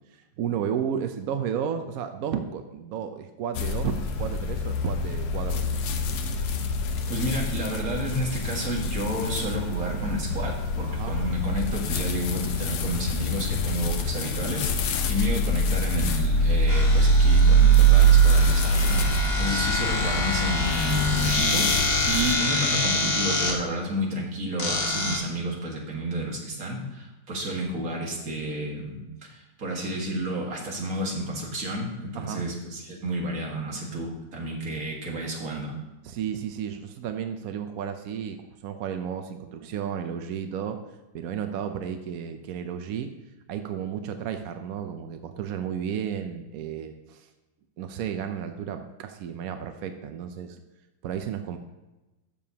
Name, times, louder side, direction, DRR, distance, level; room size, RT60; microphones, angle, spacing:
voice 1, 0.1-5.8 9.8-10.0 10.9-11.2 17.3-17.4 19.3-19.5 32.1-32.4 36.0-40.8 41.1-43.1 43.5-47.3 47.8-50.6 51.0-51.6, right 8 dB, 75° right, 7 dB, 0.8 m, -33 dB
sound 1, 3.6-22.3, right 2 dB, 70° left, 1.3 m, -24 dB
voice 2, 7.1-29.0 29.3-35.7, right 1 dB, 45° right, -1 dB, 2.0 m, -31 dB
sound 2, 16.7-23.5 24.6-25.2, left 2 dB, 35° left, 1.4 m, -27 dB
12.5 x 7.0 x 2.8 m, 1.1 s
omnidirectional pair, 2.2 m